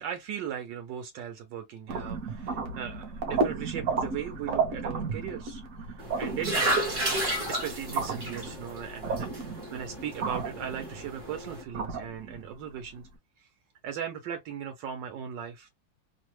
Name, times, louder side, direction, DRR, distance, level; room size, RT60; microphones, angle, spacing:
voice 1, 0.0-5.6 5.9-6.8 7.5-13.1 13.4-13.5 13.8-15.7, right 9 dB, 80° right, 1.3 m, -38 dB
sound 1, 1.9-13.0, right 4 dB, 55° right, 1.0 m, -34 dB
Dumping Soup into Toilet (short), 6.0-11.6, right 1 dB, 25° right, 0.8 m, -32 dB
3.2 x 2.1 x 3.0 m
omnidirectional pair, 2.0 m